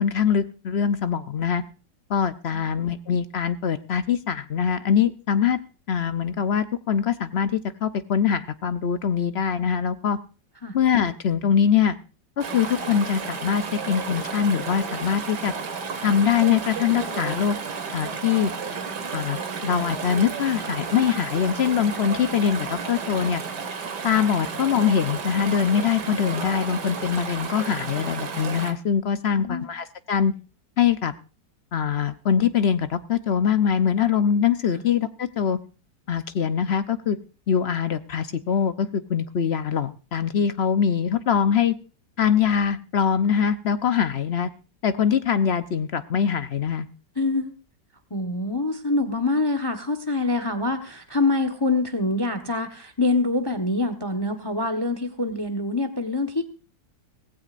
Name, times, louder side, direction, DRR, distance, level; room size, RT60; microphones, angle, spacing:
voice 1, 0.0-1.6 2.1-5.6 5.9-10.2 10.7-12.0 12.4-15.5 16.0-17.6 17.9-18.5 19.1-23.4 24.0-30.3 30.8-31.1 31.7-35.6 36.1-37.2 37.5-41.7 42.2-44.5 44.8-46.9, left 7 dB, 50° left, 11 dB, 0.8 m, -23 dB
Chatter / Stream, 12.4-28.7, right 5 dB, 75° right, 2.2 m, -32 dB
voice 2, 29.3-29.7 47.2-47.5 48.1-56.4, left 2 dB, 15° left, 9 dB, 1.0 m, -25 dB
18.5 x 16.0 x 2.5 m, 0.34 s
omnidirectional pair, 1.9 m